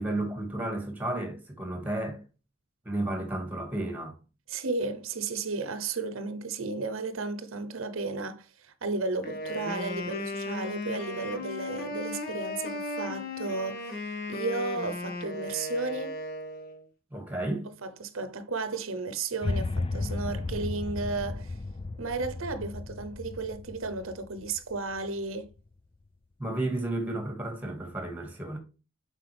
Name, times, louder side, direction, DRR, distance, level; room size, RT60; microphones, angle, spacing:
voice 1, 0.0-2.2 2.8-4.2 17.1-17.7 26.4-28.6, right 1 dB, 10° right, 2.0 m, -32 dB
voice 2, 4.5-16.2 17.8-21.6 22.0-25.5, right 3 dB, 75° right, 0.8 m, -34 dB
Wind instrument woodwind instrument, 9.2-16.8, left 2 dB, 45° left, 1.8 m, -36 dB
sound 1, 19.4-25.6, left 3 dB, 25° left, 0.3 m, -34 dB
7.8 x 5.2 x 3.4 m
head